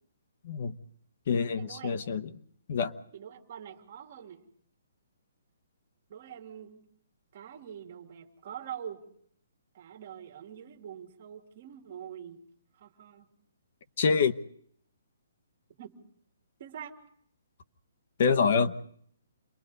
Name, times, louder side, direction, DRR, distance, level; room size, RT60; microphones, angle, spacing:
voice 1, 0.4-0.7 1.3-2.3 2.7-3.0 14.0-14.4 18.2-18.7, left 5 dB, 45° left, 10 dB, 1.0 m, -26 dB
voice 2, 1.6-2.0 3.1-4.4 6.1-6.8 7.3-9.0 9.7-12.4 12.7-13.3 15.8-16.0 16.6-17.0, right 9 dB, 35° right, 3 dB, 2.2 m, -44 dB
28.5 x 22.5 x 4.0 m, 0.64 s
hypercardioid pair, 170°, 0 cm